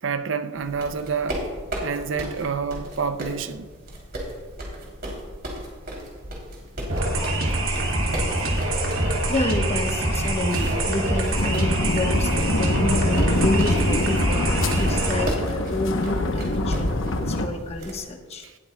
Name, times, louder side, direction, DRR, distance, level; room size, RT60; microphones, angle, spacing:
voice 1, 0.0-1.4 1.8-3.7, right 5 dB, 65° right, 0.5 m, -28 dB
sound 1, 0.6-18.0, right 1 dB, 50° right, 3.1 m, -36 dB
sound 2, 6.9-15.2, right 1 dB, 80° right, 2.4 m, -24 dB
voice 2, 9.3-18.5, left 1 dB, 30° left, 1.2 m, -29 dB
sound 3, 11.4-17.5, left 2 dB, 70° left, 0.9 m, -25 dB
18.5 x 12.5 x 2.3 m
head